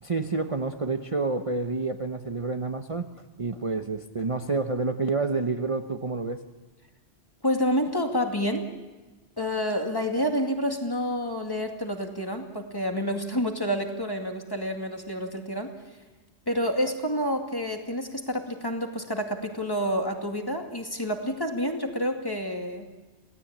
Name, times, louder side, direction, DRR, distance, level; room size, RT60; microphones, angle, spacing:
voice 1, 0.0-3.1 3.4-6.4, right 3 dB, 30° right, 6 dB, 0.9 m, -28 dB
voice 2, 7.4-8.7 9.4-15.7 16.5-22.9, equal, 20° left, 3 dB, 2.3 m, -28 dB
27.5 x 18.0 x 8.7 m, 1.2 s
omnidirectional pair, 1.1 m